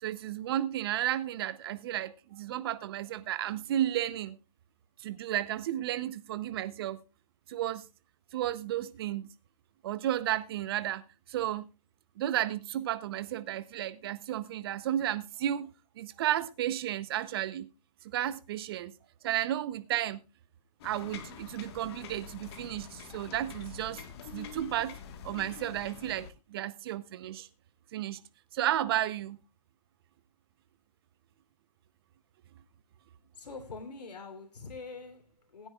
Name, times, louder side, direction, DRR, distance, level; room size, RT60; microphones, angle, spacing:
voice 1, 0.0-4.4 5.0-7.0 7.5-7.9 8.3-9.3 9.8-11.7 12.2-17.7 18.0-18.9 19.2-20.2 20.8-24.0 24.3-25.0 25.2-27.5 27.9-28.2 28.5-29.4, right 12 dB, 35° right, 0.7 m, -33 dB
sound 1, 20.8-26.3, left 7 dB, 40° left, 1.5 m, -46 dB
voice 2, 33.3-35.7, left 4 dB, 75° left, 3.3 m, -44 dB
21.0 x 9.7 x 2.4 m
hypercardioid pair, 145°, 21 cm